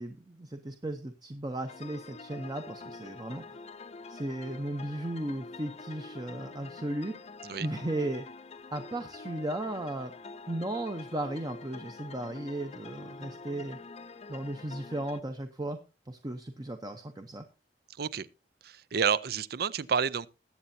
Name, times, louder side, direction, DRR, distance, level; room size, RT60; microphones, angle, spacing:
voice 1, 0.0-3.6 4.1-7.2 7.6-8.2 8.7-10.1 10.5-13.8 14.3-15.8 16.1-17.5, right 1 dB, 25° right, 0.7 m, -36 dB
sound 1, 1.7-15.2, left 4 dB, 35° left, 0.6 m, -46 dB
voice 2, 18.6-20.3, right 6 dB, 60° right, 0.5 m, -29 dB
20.5 x 8.0 x 2.7 m
head